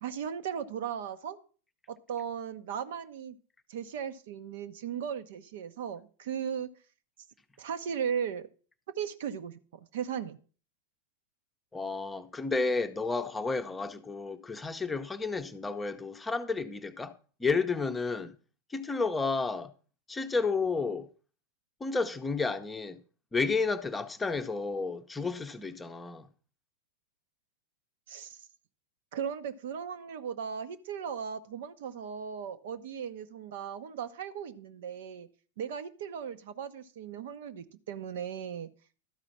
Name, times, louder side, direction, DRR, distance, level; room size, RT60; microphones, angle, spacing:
voice 1, 0.0-1.4 1.9-3.4 3.7-6.7 7.6-8.5 9.0-9.6 9.9-10.4 28.1-28.4 29.1-35.3 35.6-38.7, right 8 dB, 55° right, 0.8 m, -37 dB
voice 2, 11.7-18.4 18.7-19.7 20.1-21.1 21.8-23.0 23.3-26.3, left 4 dB, 10° left, 0.8 m, -31 dB
12.5 x 5.0 x 7.0 m
figure-of-eight pair, 90°, 0 cm